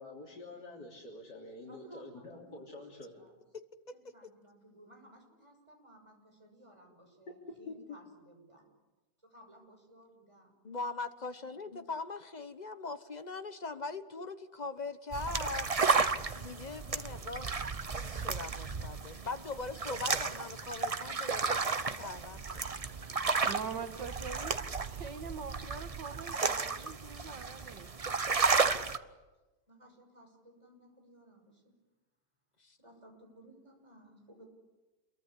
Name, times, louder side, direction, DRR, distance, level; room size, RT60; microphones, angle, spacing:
voice 1, 0.0-3.2 7.7-7.8, left 2 dB, 70° left, -2 dB, 4.0 m, -47 dB
voice 2, 1.6-3.4 3.9-8.7 9.2-10.5 11.4-11.5 29.7-31.7 32.8-34.4, right 1 dB, 15° right, 2 dB, 6.2 m, -58 dB
voice 3, 10.6-15.7 16.4-17.5 18.0-22.6 32.6-32.8, left 3 dB, 30° left, 10 dB, 1.0 m, -41 dB
sound 1, 15.1-29.0, right 4 dB, 35° right, 0.6 m, -33 dB
voice 4, 23.4-24.6 24.8-27.9, right 6 dB, 90° right, 9 dB, 2.1 m, -43 dB
28.0 x 23.0 x 8.4 m, 1.1 s
omnidirectional pair, 1.9 m